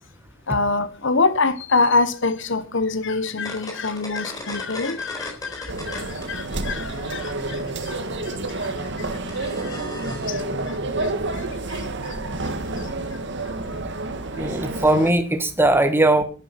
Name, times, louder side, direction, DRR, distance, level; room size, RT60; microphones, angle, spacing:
voice 1, 0.5-12.2 12.4-12.5 12.8-13.2 13.7-13.8, left 3 dB, 65° left, 1.3 m, -26 dB
sound 1, 3.3-6.3 6.6-10.3, left 1 dB, 20° left, 4.3 m, -38 dB
sound 2, 5.7-15.1, right 2 dB, 60° right, 1.8 m, -29 dB
voice 2, 14.4-16.2, right 2 dB, 10° right, 1.5 m, -19 dB
11.5 x 11.5 x 6.0 m
head